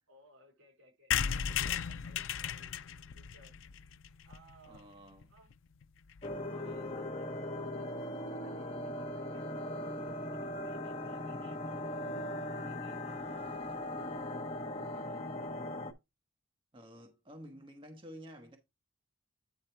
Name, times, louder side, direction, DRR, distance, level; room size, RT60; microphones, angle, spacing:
voice 1, 0.1-3.5 4.2-4.8 5.3-5.5 6.5-9.9 10.3-12.0 12.6-14.2 14.6-15.5, right 1 dB, 85° right, 4.0 m, -61 dB
sound 1, 1.1-4.8 5.2-5.3 5.5-5.6 5.8-5.9 6.1-6.4, left 8 dB, 65° left, 0.4 m, -35 dB
voice 2, 4.6-5.3 16.7-18.6, equal, 25° right, 1.0 m, -51 dB
sound 2, 6.2-15.9, left 1 dB, 30° left, 0.9 m, -39 dB
9.3 x 3.9 x 4.4 m
head